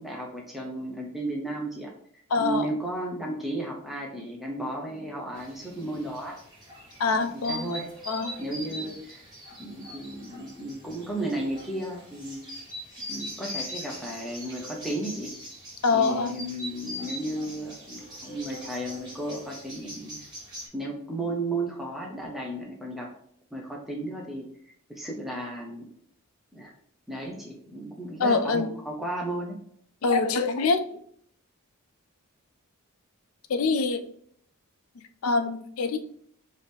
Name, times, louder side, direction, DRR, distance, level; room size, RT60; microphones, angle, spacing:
voice 1, 0.0-1.9 2.4-6.4 7.3-7.9 8.4-9.3 9.6-12.4 13.1-15.3 15.9-20.2 20.7-23.1 23.5-24.5 24.9-25.9 26.5-26.7 27.1-29.6, right 1 dB, ahead, -2 dB, 0.7 m, -34 dB
voice 2, 2.3-2.7 7.0-7.7 8.1-8.3 15.8-16.4 28.2-28.7 30.0-30.8 33.5-34.0 35.2-36.0, left 4 dB, 75° left, 9 dB, 0.5 m, -24 dB
sound 1, 5.3-20.7, equal, 20° right, 1.8 m, -41 dB
4.8 x 2.7 x 3.5 m, 0.63 s
head